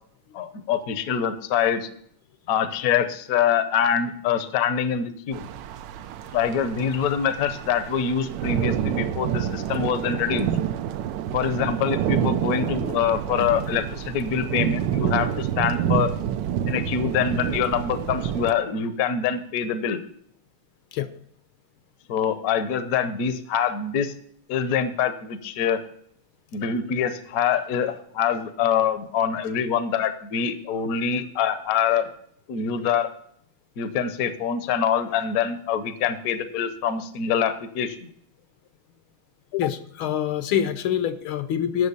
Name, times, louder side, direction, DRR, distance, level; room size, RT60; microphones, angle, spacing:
voice 1, 0.3-1.9 2.5-5.5 6.3-10.5 11.3-16.1 16.7-20.0 22.1-24.1 24.5-25.8 26.5-32.1 32.5-33.1 33.8-38.1, left 7 dB, 55° left, 11 dB, 1.0 m, -25 dB
sound 1, 5.3-18.5, right 10 dB, 70° right, 1.1 m, -28 dB
voice 2, 39.5-41.9, left 9 dB, 75° left, 11 dB, 1.6 m, -25 dB
9.4 x 6.2 x 8.2 m, 0.65 s
omnidirectional pair, 2.3 m